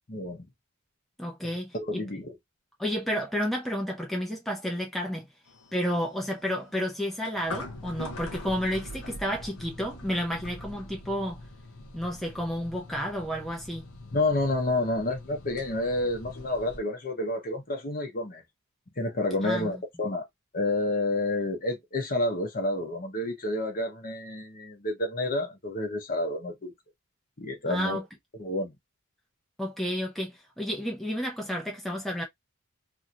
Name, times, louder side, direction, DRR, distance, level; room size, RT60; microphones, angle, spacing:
voice 1, 0.1-0.5 1.7-2.3 14.1-18.4 19.0-20.3 20.5-26.7 27.4-28.0 28.4-28.7, left 2 dB, 40° left, 1.0 m, -29 dB
voice 2, 1.2-2.0 2.8-5.3 5.7-11.4 11.9-13.9 19.4-19.8 27.7-28.0 29.6-32.2, equal, ahead, 0.8 m, -31 dB
sound 1, 5.5-16.8, left 1 dB, 85° left, 0.8 m, -43 dB
2.8 x 2.8 x 2.4 m
head